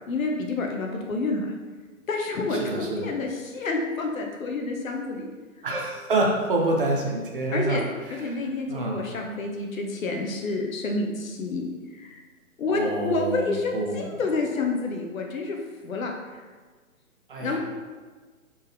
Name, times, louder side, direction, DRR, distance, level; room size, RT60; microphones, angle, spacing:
voice 1, 0.1-1.5 2.1-5.3 7.5-7.8 8.1-11.6 12.0-12.2 12.6-15.6 15.8-16.1 17.4-17.6, left 3 dB, 70° left, 2 dB, 1.0 m, -28 dB
voice 2, 2.5-3.1 5.6-7.8 8.1-8.4 8.7-9.0 12.7-14.1 17.3-17.6, right 2 dB, 40° right, 0 dB, 0.6 m, -27 dB
4.3 x 3.6 x 3.3 m, 1.4 s
hypercardioid pair, 160°, 43 cm